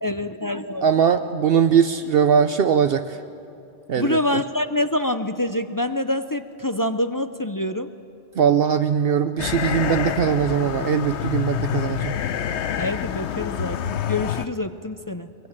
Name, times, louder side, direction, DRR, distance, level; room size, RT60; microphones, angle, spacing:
voice 1, 0.0-0.9 4.0-7.9 12.8-13.8 14.1-15.3, left 1 dB, 25° left, 9 dB, 0.5 m, -26 dB
voice 2, 0.8-3.2 3.9-4.4 8.4-12.2, right 7 dB, 65° right, 9 dB, 0.9 m, -20 dB
sound 1, 9.4-14.5, left 10 dB, 85° left, 1.0 m, -27 dB
22.5 x 21.5 x 8.7 m, 2.8 s
omnidirectional pair, 1.1 m